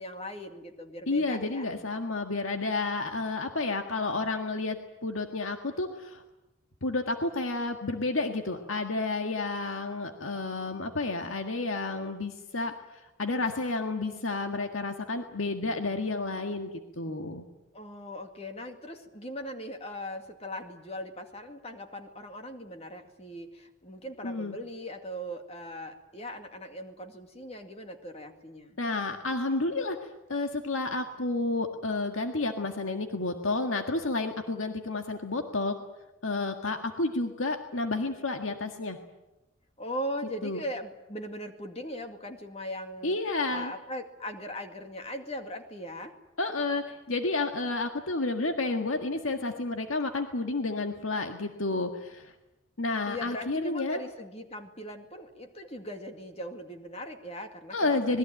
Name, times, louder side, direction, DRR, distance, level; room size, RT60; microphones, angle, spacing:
voice 1, 0.0-1.7 17.7-28.8 39.8-43.2 43.5-46.1 53.0-58.2, equal, 30° left, 5 dB, 2.3 m, -39 dB
voice 2, 1.1-6.2 6.8-17.5 24.2-24.6 28.8-35.8 36.2-39.0 40.4-40.6 43.0-43.7 46.4-52.3 52.8-54.0 57.7-58.2, left 3 dB, 80° left, 5 dB, 1.8 m, -31 dB
26.5 x 20.5 x 9.1 m, 0.98 s
head